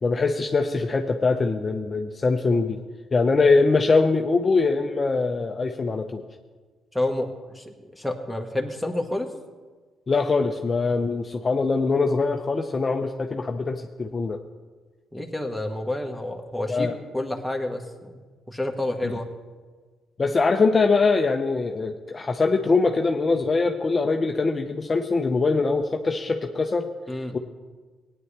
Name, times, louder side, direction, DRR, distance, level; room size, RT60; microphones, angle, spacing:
voice 1, 0.0-2.8 3.1-6.2 10.1-14.4 16.7-17.0 19.0-19.1 20.2-26.9 27.3-27.4, left 3 dB, 30° left, 4 dB, 0.6 m, -22 dB
voice 2, 6.9-9.3 15.1-19.3 27.1-27.4, left 1 dB, ahead, 1 dB, 1.4 m, -29 dB
17.0 x 9.7 x 3.3 m, 1.4 s
cardioid pair, 90°, 0 cm